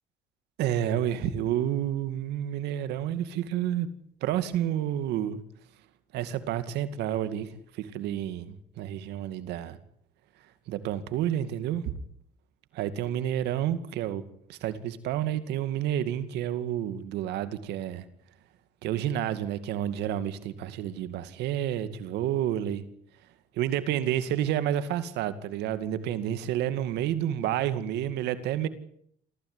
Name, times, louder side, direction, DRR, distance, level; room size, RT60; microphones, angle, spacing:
voice 1, 0.6-3.9 4.2-5.4 6.1-9.8 10.7-11.9 12.7-14.2 14.5-18.1 18.8-22.8 23.5-28.7, right 11 dB, 85° right, 2.3 m, -30 dB
26.0 x 16.0 x 9.8 m
cardioid pair, 110°, 17 cm